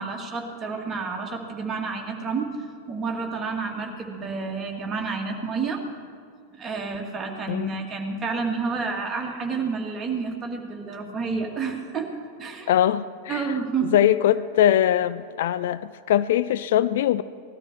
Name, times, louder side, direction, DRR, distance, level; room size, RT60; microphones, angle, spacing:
voice 1, 0.0-2.5 2.9-5.8 6.5-12.1 12.4-12.7 13.3-14.0, right 4 dB, 20° right, 0 dB, 2.2 m, -29 dB
voice 2, 12.7-13.5 13.9-17.2, left 11 dB, 55° left, 15 dB, 0.4 m, -21 dB
19.5 x 13.0 x 4.6 m, 2.2 s
figure-of-eight pair, 90°, 0 cm